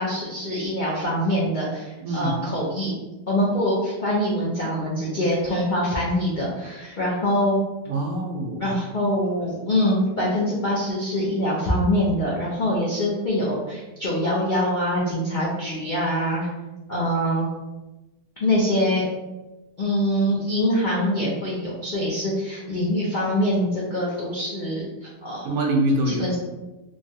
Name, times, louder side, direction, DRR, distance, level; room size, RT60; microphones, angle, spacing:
voice 1, 0.0-2.9 3.3-7.6 8.6-16.5 16.9-17.5 18.4-19.1 19.8-25.4 26.0-26.4, equal, 70° left, -6 dB, 0.4 m, -24 dB
voice 2, 2.0-2.4 7.9-8.8 25.4-26.3, right 1 dB, 75° right, 0 dB, 1.1 m, -24 dB
3.1 x 2.3 x 2.6 m, 1.1 s
omnidirectional pair, 1.7 m